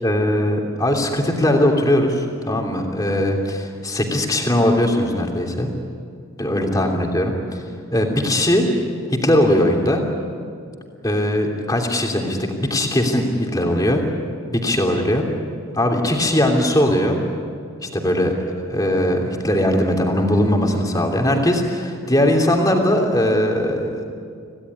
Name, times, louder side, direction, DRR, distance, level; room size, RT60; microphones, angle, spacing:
voice 1, 0.0-5.7 6.4-7.6 7.9-8.7 9.1-10.0 11.0-14.0 14.5-15.3 15.7-17.2 17.8-24.0, left 1 dB, 15° left, 2 dB, 3.0 m, -19 dB
27.0 x 17.0 x 9.9 m, 2.2 s
head